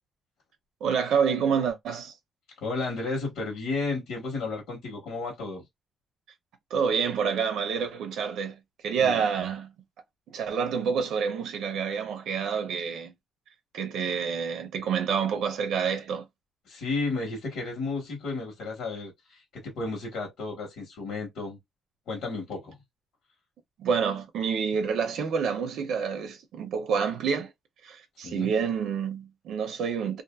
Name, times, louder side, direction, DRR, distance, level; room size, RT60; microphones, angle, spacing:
voice 1, 0.8-2.1 6.7-9.7 10.3-13.1 13.7-16.3 23.8-27.5 27.8-30.2, right 6 dB, 90° right, 0.6 m, -28 dB
voice 2, 2.6-5.6 9.0-9.2 16.7-21.6 22.1-22.8 28.2-28.5, left 3 dB, 85° left, 1.3 m, -33 dB
2.8 x 2.5 x 2.3 m
cardioid pair, 135°, 0 cm